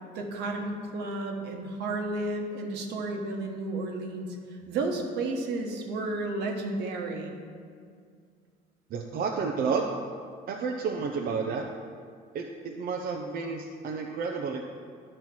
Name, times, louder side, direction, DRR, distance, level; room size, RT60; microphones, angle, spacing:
voice 1, 0.1-4.3 4.7-7.4, right 2 dB, 80° right, 2 dB, 1.4 m, -32 dB
voice 2, 8.9-9.9 10.5-11.7 12.3-14.6, right 5 dB, 60° right, 1 dB, 0.7 m, -31 dB
11.0 x 4.4 x 6.1 m, 2.1 s
cardioid pair, 110°, 17 cm